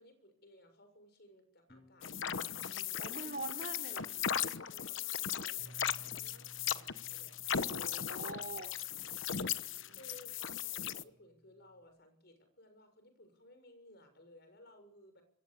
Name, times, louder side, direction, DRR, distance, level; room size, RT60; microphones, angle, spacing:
voice 1, 0.0-2.1 2.5-3.6 4.7-5.8 6.1-7.6 9.9-15.2, left 1 dB, 50° left, 6.7 m, -60 dB
sound 1, 1.7-6.3, equal, 25° left, 3.0 m, -63 dB
sound 2, 2.0-11.0, left 8 dB, 65° left, 1.1 m, -37 dB
voice 2, 3.0-4.2 7.6-8.8 9.5-10.0, right 3 dB, 45° right, 3.1 m, -45 dB
Bass guitar, 5.6-11.8, right 1 dB, 10° left, 6.8 m, -60 dB
26.0 x 22.0 x 8.8 m
head